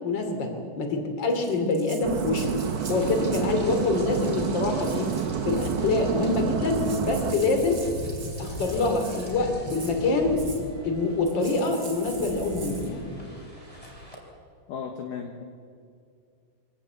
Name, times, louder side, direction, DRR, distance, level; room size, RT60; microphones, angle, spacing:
voice 1, 0.0-2.6 2.9-5.1 5.4-7.8 8.4-10.5 10.8-13.0, left 3 dB, 30° left, 5 dB, 2.9 m, -25 dB
Rattle (instrument), 1.3-3.6 4.1-4.5 4.8-5.9 6.4-6.5 6.7-9.3 9.7-10.0 10.4-10.6 11.2-12.9, right 4 dB, 35° right, 2.8 m, -44 dB
sound 1, 2.0-7.4, right 8 dB, 80° right, 3.5 m, -29 dB
Rain, 2.4-14.2, left 1 dB, 10° left, 4.0 m, -39 dB
voice 2, 14.7-15.4, left 6 dB, 65° left, 5 dB, 2.5 m, -35 dB
25.0 x 18.5 x 8.3 m, 2.3 s
omnidirectional pair, 5.1 m